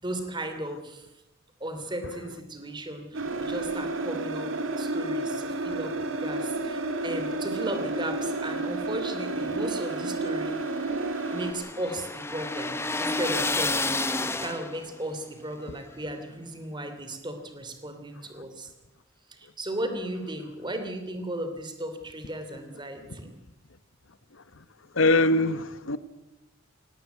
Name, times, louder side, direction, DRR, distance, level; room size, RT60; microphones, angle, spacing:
voice 1, 0.0-1.1 1.6-10.7 11.3-12.7 13.0-13.8 14.2-18.7 19.3-23.3, right 1 dB, 25° right, 3.0 m, -35 dB
sound 1, 3.1-11.5, right 2 dB, 90° right, 2.3 m, -31 dB
sound 2, 9.5-14.9, left 2 dB, 15° left, 1.2 m, -31 dB
voice 2, 24.9-26.0, left 2 dB, 80° left, 1.2 m, -22 dB
18.0 x 17.5 x 9.3 m
head